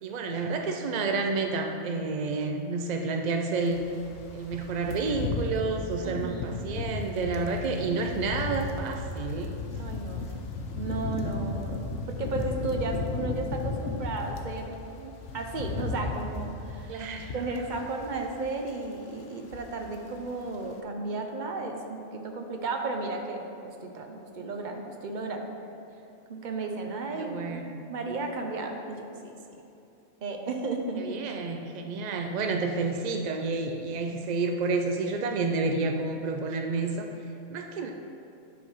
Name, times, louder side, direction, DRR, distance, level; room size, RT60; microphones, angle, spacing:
voice 1, 0.0-3.8 4.3-9.6 10.2-10.4 16.9-17.6 27.2-27.8 31.0-37.1 37.5-37.9, right 3 dB, 70° right, 4 dB, 0.4 m, -30 dB
sound 1, 3.7-14.6 15.0-18.4 18.6-18.9 19.2-20.0 20.3-20.5, left 3 dB, 90° left, 1.1 m, -35 dB
voice 2, 6.0-6.6 9.8-10.3 10.7-17.0 17.3-25.4 26.3-27.6 27.9-29.3 30.2-31.2, right 3 dB, 45° right, 3 dB, 0.7 m, -34 dB
9.9 x 4.1 x 5.5 m, 2.7 s
omnidirectional pair, 1.3 m